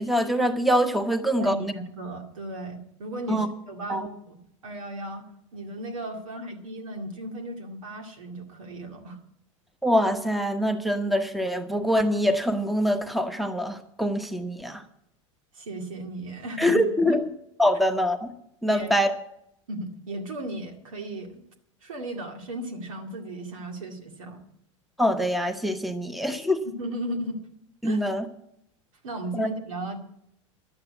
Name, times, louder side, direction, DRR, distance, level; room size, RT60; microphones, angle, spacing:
voice 1, 0.0-1.7 3.3-3.5 3.9-4.0 9.8-14.8 16.6-17.3 17.6-18.3 18.6-19.1 25.0-26.6 27.8-28.3 29.3-29.5, equal, ahead, 8 dB, 1.0 m, -24 dB
voice 2, 1.4-5.3 5.5-9.2 15.5-17.2 18.7-18.9 19.7-21.4 21.8-24.4 26.8-27.4 27.8-28.0 29.0-30.0, right 1 dB, 85° right, 4 dB, 2.2 m, -36 dB
11.5 x 8.8 x 8.3 m, 0.76 s
hypercardioid pair, 95°, 17 cm